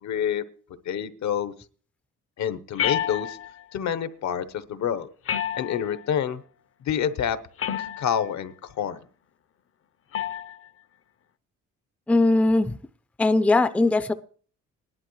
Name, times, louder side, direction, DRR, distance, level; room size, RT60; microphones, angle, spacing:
voice 1, 0.0-0.4 0.8-1.5 2.4-3.4 3.7-5.1 5.6-6.4 6.8-7.4 7.8-9.0, left 8 dB, 65° left, 1.0 m, -27 dB
sound 1, 2.8-3.6 5.3-6.1 7.6-8.3 10.1-10.6, left 10 dB, 45° left, 0.7 m, -29 dB
voice 2, 12.1-12.7 13.2-14.1, left 2 dB, 5° left, 0.5 m, -20 dB
18.5 x 11.0 x 3.1 m
cardioid pair, 90°, 30 cm